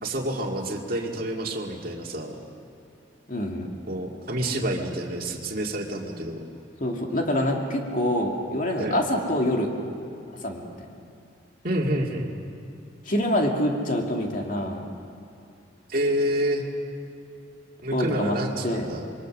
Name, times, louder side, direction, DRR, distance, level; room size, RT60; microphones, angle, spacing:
voice 1, 0.0-2.4 3.9-6.4 8.8-9.0 11.6-12.3 15.9-16.6 17.8-19.1, right 1 dB, 50° right, 0 dB, 2.2 m, -28 dB
voice 2, 3.3-3.7 6.8-9.7 10.4-10.7 13.1-14.8 17.9-18.4 18.6-19.1, left 1 dB, 45° left, 1 dB, 2.4 m, -26 dB
26.0 x 22.5 x 6.4 m, 2.4 s
head